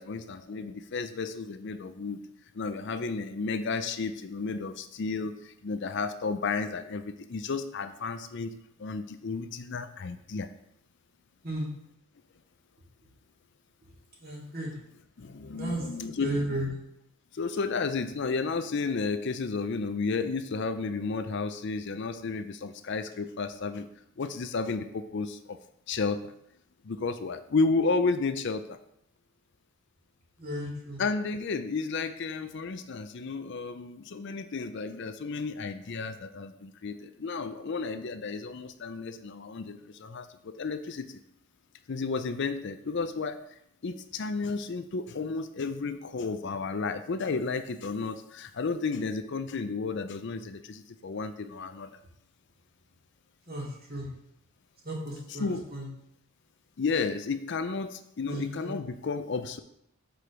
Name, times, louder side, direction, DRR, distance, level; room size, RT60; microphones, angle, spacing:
voice 1, 0.0-2.2 2.5-8.5 8.8-10.5 15.2-16.6 17.3-23.9 24.2-25.6 25.9-26.3 26.8-28.8 31.0-41.2 41.9-43.4 43.8-51.9 55.3-55.7 56.8-59.6, left 4 dB, 50° left, 10 dB, 0.5 m, -32 dB
voice 2, 14.2-14.7 15.5-15.8 16.2-16.7 30.4-31.0 53.5-54.1 54.8-55.5 55.7-55.9 58.3-58.7, right 1 dB, 40° right, -3 dB, 2.3 m, -34 dB
6.2 x 5.1 x 5.8 m, 0.75 s
head